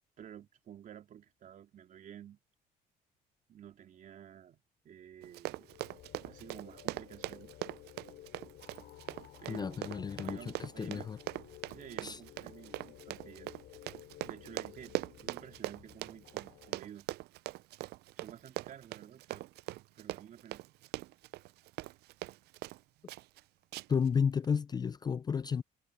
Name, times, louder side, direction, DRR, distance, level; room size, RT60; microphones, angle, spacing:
voice 1, 0.2-2.4 3.5-5.7 6.2-7.5 9.4-11.1 11.7-13.5 14.2-15.0 15.2-17.1 18.2-19.5 19.9-20.6, right 9 dB, 50° right, 3.3 m, -52 dB
sound 1, 5.2-16.8, left 14 dB, 75° left, 7.8 m, -55 dB
Run, 5.2-22.8 23.1-23.4 23.7-24.1 24.4-24.5, right 18 dB, 75° right, 0.4 m, -41 dB
voice 2, 9.5-11.2 12.0-12.2 23.9-25.6, left 6 dB, 25° left, 0.3 m, -32 dB
cardioid pair, 110°, 17 cm